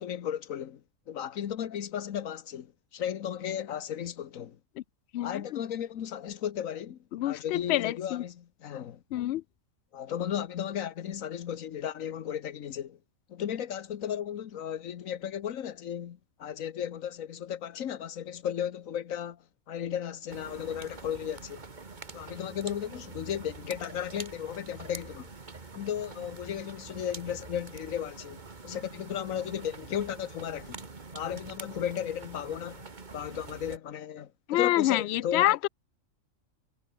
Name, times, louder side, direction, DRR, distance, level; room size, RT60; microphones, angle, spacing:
voice 1, 0.0-4.6 5.2-7.0 7.2-9.0 9.9-13.0 13.3-21.6 22.1-25.3 25.7-30.9 31.1-32.9 33.1-35.5, left 9 dB, 85° left, 1.4 m, -35 dB
voice 2, 5.1-5.6 7.1-8.2 9.1-9.4 34.5-35.7, left 15 dB, 65° left, 0.7 m, -27 dB
sound 1, 20.3-33.8, right 4 dB, 35° right, 1.8 m, -45 dB
omnidirectional pair, 1.4 m